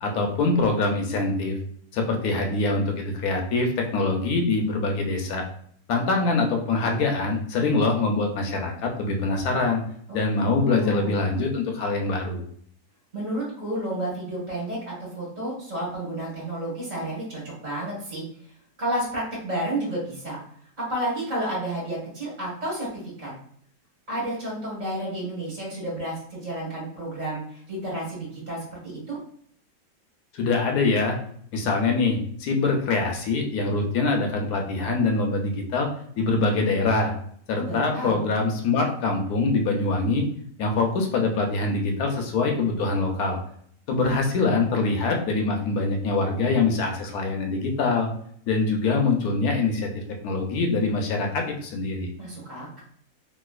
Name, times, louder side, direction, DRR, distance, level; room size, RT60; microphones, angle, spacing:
voice 1, 0.0-1.6 1.9-5.4 5.9-9.8 10.1-12.4 30.3-31.2 31.5-35.9 36.2-37.1 37.5-40.3 40.6-43.4 43.9-48.1 48.5-49.9 50.2-52.1, left 3 dB, 70° left, 2 dB, 1.0 m, -24 dB
voice 2, 10.6-11.1 13.1-18.2 18.8-20.4 20.8-22.9 23.2-23.3 24.1-28.6 28.8-29.2 37.5-38.2 52.2-52.8, right 1 dB, 25° right, -6 dB, 1.4 m, -31 dB
3.0 x 3.0 x 2.3 m, 0.63 s
omnidirectional pair, 2.0 m